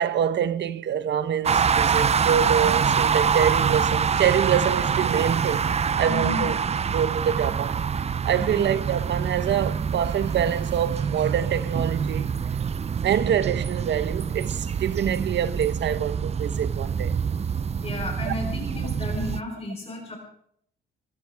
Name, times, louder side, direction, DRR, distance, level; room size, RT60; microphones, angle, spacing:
voice 1, 0.0-5.7 6.0-6.6 6.9-7.8 8.2-12.3 13.0-17.1 18.2-18.3, right 9 dB, 65° right, 1.0 m, -25 dB
sound 1, 1.4-19.4, right 6 dB, 30° right, 0.6 m, -25 dB
voice 2, 6.1-6.5 8.4-8.6 17.8-20.2, left 2 dB, 30° left, 3.9 m, -33 dB
24.5 x 15.0 x 3.5 m
cardioid pair, 90°, 20 cm